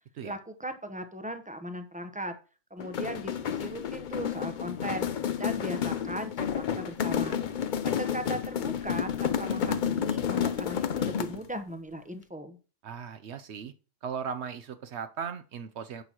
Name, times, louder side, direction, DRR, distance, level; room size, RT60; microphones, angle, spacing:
voice 1, 0.2-2.3 2.7-5.1 5.4-6.5 6.8-7.4 7.8-12.6, right 1 dB, 10° right, 8 dB, 0.6 m, -38 dB
sound 1, 2.8-11.5, left 8 dB, 50° left, 0.6 m, -30 dB
voice 2, 12.8-13.7 14.0-16.0, right 7 dB, 60° right, 10 dB, 0.8 m, -37 dB
10.5 x 6.9 x 2.9 m, 0.35 s
omnidirectional pair, 1.4 m